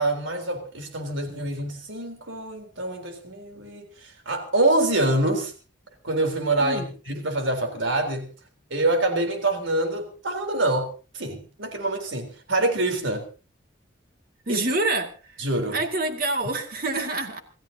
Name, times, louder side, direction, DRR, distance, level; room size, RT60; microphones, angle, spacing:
voice 1, 0.0-5.5 6.0-8.3 8.7-10.9 11.1-13.2 14.5-14.6 15.4-15.8, right 2 dB, 75° right, 5 dB, 3.8 m, -25 dB
voice 2, 6.6-6.9 14.5-15.5 15.7-17.4, right 2 dB, 45° right, 5 dB, 2.1 m, -27 dB
27.5 x 14.5 x 2.8 m, 0.35 s
head